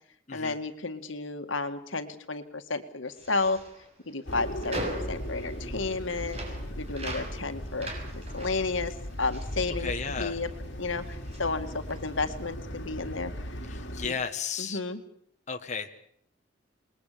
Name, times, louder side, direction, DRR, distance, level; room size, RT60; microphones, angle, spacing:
voice 1, 0.3-3.6 4.1-6.4 6.8-10.5 10.8-13.3 14.0-14.2 14.6-15.0, left 3 dB, 75° left, 8 dB, 2.0 m, -32 dB
sound 1, 3.1-10.6 10.8-12.3, right 1 dB, 30° right, 6.7 m, -42 dB
sound 2, 4.2-14.1, equal, 60° left, 3.4 m, -38 dB
voice 2, 9.8-10.4 13.7-14.8 15.5-15.9, left 5 dB, 35° left, 5 dB, 1.5 m, -34 dB
28.0 x 21.0 x 6.9 m, 0.67 s
head